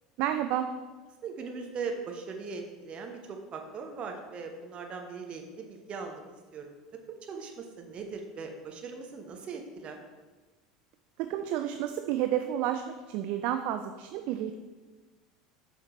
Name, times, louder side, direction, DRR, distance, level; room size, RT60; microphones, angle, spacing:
voice 1, 0.2-0.7 11.2-14.6, right 11 dB, 50° right, 8 dB, 0.3 m, -30 dB
voice 2, 1.2-6.2 6.5-6.8 7.1-10.0, right 5 dB, 35° right, 3 dB, 1.0 m, -39 dB
7.5 x 5.6 x 3.1 m, 1.3 s
figure-of-eight pair, 70°, 3 cm